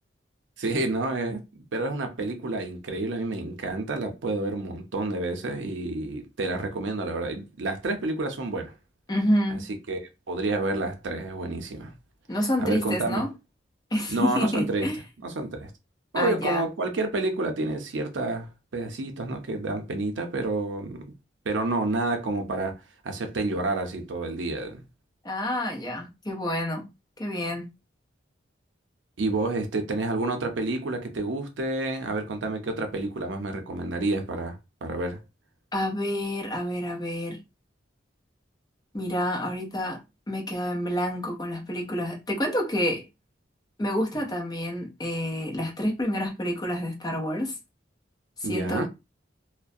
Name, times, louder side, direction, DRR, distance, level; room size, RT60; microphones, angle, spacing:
voice 1, 0.6-8.7 9.5-9.6 9.9-10.0 10.3-11.9 12.6-13.2 14.1-14.9 15.2-15.7 16.1-21.1 21.4-24.8 29.2-35.2 48.4-48.9, right 2 dB, 80° right, 0.6 m, -29 dB
voice 2, 9.1-9.7 12.3-13.3 13.9-15.0 16.1-16.7 25.2-26.9 27.2-27.7 35.7-37.4 38.9-43.0 43.8-47.6 48.4-48.9, left 1 dB, 20° left, 0.6 m, -28 dB
2.3 x 2.1 x 2.5 m
head